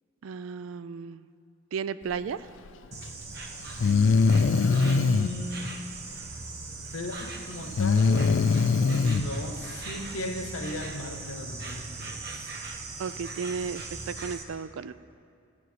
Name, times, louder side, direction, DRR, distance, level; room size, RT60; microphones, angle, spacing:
voice 1, 0.2-1.2 1.7-2.5 13.0-14.9, right 6 dB, 80° right, 14 dB, 0.4 m, -34 dB
Breathing, 2.9-3.0 3.8-5.3 7.8-9.2, left 4 dB, 65° left, 0.4 m, -22 dB
Insect, 2.9-14.4, right 3 dB, 50° right, 1.0 m, -39 dB
voice 2, 3.8-5.8 6.9-8.6 8.8-12.5, left 1 dB, 90° left, 5 dB, 0.9 m, -37 dB
16.0 x 5.3 x 7.9 m, 2.4 s
head